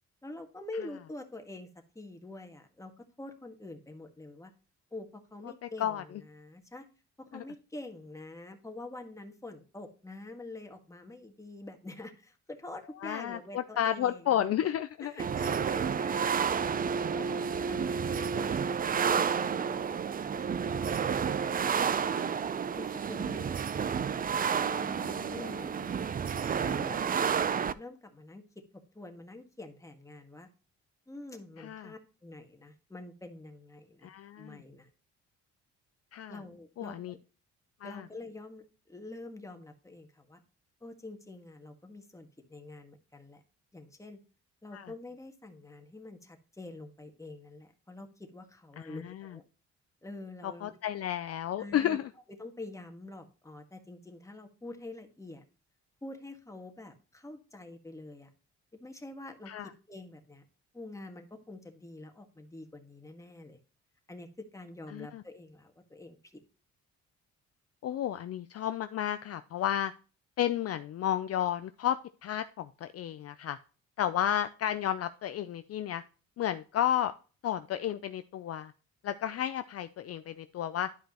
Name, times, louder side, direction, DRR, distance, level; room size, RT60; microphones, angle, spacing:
voice 1, 0.2-1.7 1.9-4.5 4.9-6.9 7.2-14.5 15.0-16.8 17.1-20.0 20.2-20.7 21.1-21.6 22.7-24.0 24.6-26.1 26.6-27.2 27.5-30.5 31.1-34.1 34.4-34.9 36.3-37.2 37.8-40.4 40.8-43.4 43.7-44.2 44.6-49.4 50.0-50.8 51.6-52.0 52.4-55.4 56.0-58.3 58.7-60.5 60.7-63.6 64.1-66.2, left 2 dB, 10° left, 4 dB, 1.6 m, -46 dB
voice 2, 13.0-15.1 22.0-22.5 25.0-25.6 31.6-31.9 34.0-34.6 36.1-36.4 36.8-37.1 37.8-38.0 44.7-44.9 48.8-49.4 50.4-52.1 59.5-59.7 64.9-65.2 67.8-69.9 70.4-73.6 74.0-76.0 76.4-77.1 77.4-78.7 79.0-80.9, left 10 dB, 55° left, 11 dB, 0.5 m, -32 dB
sound 1, 15.2-27.7, right 7 dB, 30° right, 0.4 m, -30 dB
11.0 x 5.2 x 2.9 m, 0.36 s
cardioid pair, 90°, 30 cm